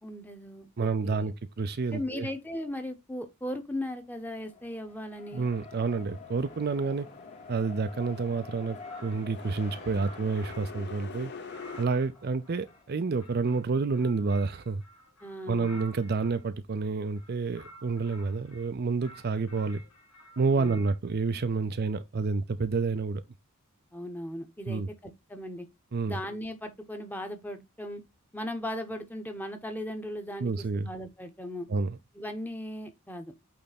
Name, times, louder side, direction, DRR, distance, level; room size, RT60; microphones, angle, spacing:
voice 1, 0.0-1.3 1.9-5.5 15.2-15.7 20.6-20.8 23.9-25.7 26.1-28.0 28.3-31.7 32.2-33.3, left 1 dB, 10° left, 0.9 m, -37 dB
voice 2, 0.8-2.3 5.3-7.1 7.5-11.3 11.8-14.8 15.5-19.8 20.4-23.2 24.7-24.9 25.9-26.2 30.4-30.9 31.7-32.0, right 4 dB, 45° right, 0.5 m, -29 dB
Race car auto racing, 4.0-13.1, left 4 dB, 30° left, 1.1 m, -49 dB
sound 1, 5.9-11.9, left 4 dB, 50° left, 1.0 m, -46 dB
sound 2, 8.7-10.9 11.3-16.4 17.1-18.7 19.0-21.0, equal, 80° left, 1.7 m, -52 dB
8.5 x 3.4 x 4.1 m
head